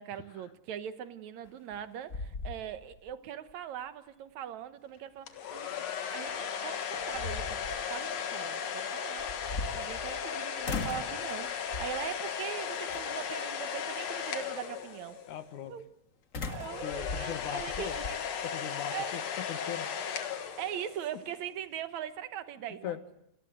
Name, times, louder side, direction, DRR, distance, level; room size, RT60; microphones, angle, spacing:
voice 1, 0.0-7.6 7.9-9.3 9.7-15.2 15.7-15.9 16.5-18.2 18.9-19.1 20.6-23.0, right 10 dB, 70° right, 2.3 m, -41 dB
sound 1, 1.5-1.8 2.1-3.1 3.5-3.6 6.3-6.4 6.9-7.8 9.2-10.3 10.6-11.2 11.7-12.1 12.9-13.3 16.3-18.2, left 3 dB, 35° left, 1.5 m, -39 dB
sound 2, 5.3-15.4 16.4-21.2, left 7 dB, 65° left, 2.7 m, -36 dB
voice 2, 15.3-15.7 16.8-18.0 18.4-19.9 22.8-23.2, left 10 dB, 80° left, 2.8 m, -39 dB
29.0 x 20.5 x 8.0 m
omnidirectional pair, 3.4 m